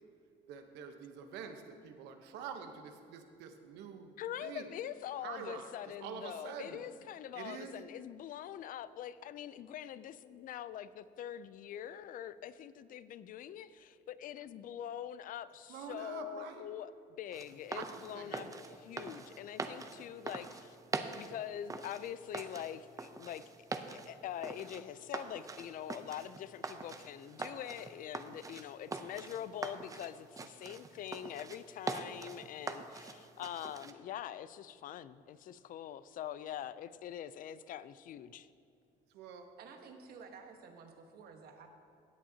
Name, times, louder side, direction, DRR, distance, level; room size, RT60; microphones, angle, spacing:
voice 1, 0.5-4.1 4.4-4.7 5.2-6.8 7.3-7.8 15.7-16.7 17.7-18.5 39.1-39.5, right 6 dB, 90° right, 6 dB, 1.0 m, -46 dB
voice 2, 4.2-16.9 17.2-20.8 21.2-23.4 23.7-38.5, left 10 dB, 55° left, 16 dB, 0.4 m, -44 dB
sound 1, 17.3-33.9, right 3 dB, 20° right, 0.6 m, -44 dB
voice 3, 39.6-41.7, right 5 dB, 65° right, 4 dB, 1.3 m, -52 dB
16.0 x 8.4 x 2.8 m, 2.6 s
cardioid pair, 110°, 17 cm